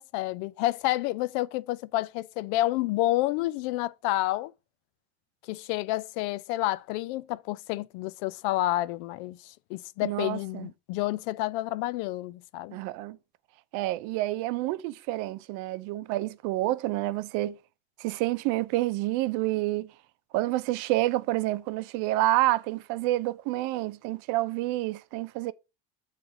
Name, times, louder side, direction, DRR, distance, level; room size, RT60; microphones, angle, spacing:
voice 1, 0.0-4.5 5.5-12.8, left 16 dB, 85° left, 0.5 m, -29 dB
voice 2, 10.0-10.7 12.7-13.2 13.7-17.6 18.0-19.9 20.3-25.5, right 17 dB, 70° right, 0.6 m, -28 dB
7.9 x 3.3 x 4.8 m
cardioid pair, 145°, 32 cm